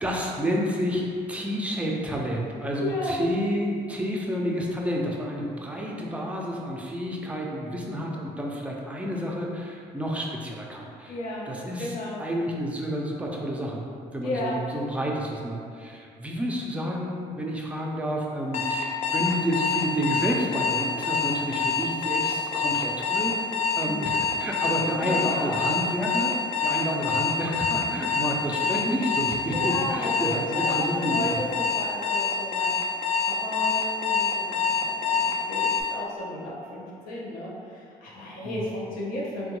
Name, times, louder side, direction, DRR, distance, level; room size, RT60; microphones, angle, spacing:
voice 1, 0.0-11.1 11.5-11.9 12.2-13.8 14.1-31.4 38.4-38.6, equal, 10° right, -2 dB, 0.5 m, -30 dB
voice 2, 2.8-3.2 11.1-11.5 11.8-12.2 14.2-14.6 23.7-24.2 25.0-25.5 29.5-32.7 33.2-39.6, left 1 dB, 80° left, -5 dB, 0.8 m, -33 dB
Alarm, 18.5-35.8, left 5 dB, 50° left, 0.4 m, -26 dB
3.4 x 2.2 x 3.0 m, 2.3 s
cardioid pair, 95°, 14 cm